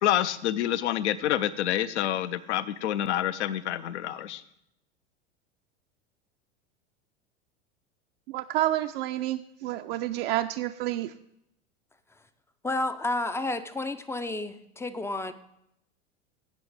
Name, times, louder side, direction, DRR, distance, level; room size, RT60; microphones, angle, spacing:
voice 1, 0.0-4.4, left 12 dB, 70° left, 16 dB, 0.6 m, -27 dB
voice 2, 8.3-11.1, right 14 dB, 55° right, 6 dB, 0.5 m, -29 dB
voice 3, 12.6-15.3, left 2 dB, 10° left, 11 dB, 0.4 m, -31 dB
16.5 x 6.2 x 3.3 m, 0.78 s
hypercardioid pair, 90°, 35 cm